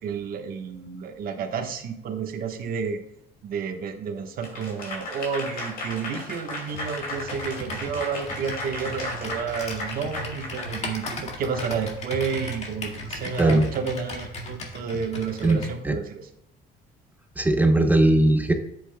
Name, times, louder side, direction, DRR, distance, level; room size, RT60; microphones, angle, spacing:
voice 1, 0.0-3.0 3.4-16.3, right 6 dB, 60° right, 5 dB, 1.3 m, -31 dB
Applause / Crowd, 4.4-11.6, left 2 dB, 60° left, 2.5 m, -35 dB
Computer keyboard, 6.7-15.8, left 1 dB, 40° left, 2.0 m, -37 dB
voice 2, 17.4-18.5, right 1 dB, 10° right, 5 dB, 0.9 m, -19 dB
10.0 x 8.4 x 2.3 m, 0.81 s
cardioid pair, 110°, 17 cm